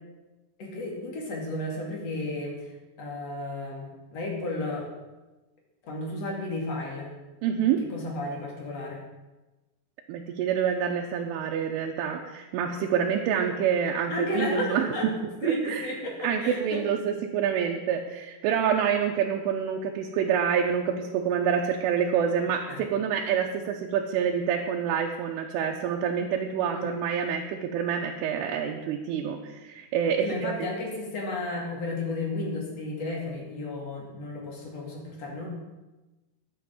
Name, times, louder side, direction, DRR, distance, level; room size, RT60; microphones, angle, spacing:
voice 1, 0.6-2.7 3.0-4.9 5.8-7.1 7.8-9.1 14.1-15.1 15.4-16.8 22.7-22.8 26.7-26.9 30.2-35.5, left 2 dB, 40° left, -1 dB, 2.9 m, -33 dB
voice 2, 7.4-7.8 10.1-15.0 15.4-15.8 16.2-30.7, right 8 dB, 80° right, 0 dB, 3.4 m, -27 dB
11.0 x 9.0 x 7.7 m, 1.1 s
omnidirectional pair, 5.7 m